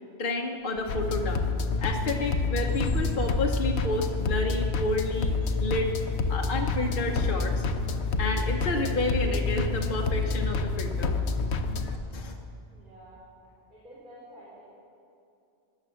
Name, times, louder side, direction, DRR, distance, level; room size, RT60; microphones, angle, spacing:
voice 1, 0.2-1.5 1.8-5.9 6.3-7.6 8.2-11.2 11.8-12.4, left 2 dB, 55° left, 1 dB, 1.1 m, -30 dB
Liquid, 0.6-4.3 4.6-12.2, left 1 dB, 5° left, 1.6 m, -43 dB
sound 1, 0.9-12.0, left 4 dB, 85° left, 1.1 m, -28 dB
voice 2, 12.0-12.3 12.7-13.2 13.7-14.6, right 1 dB, 50° right, -10 dB, 4.3 m, -50 dB
20.5 x 7.8 x 7.0 m, 2.6 s
omnidirectional pair, 1.1 m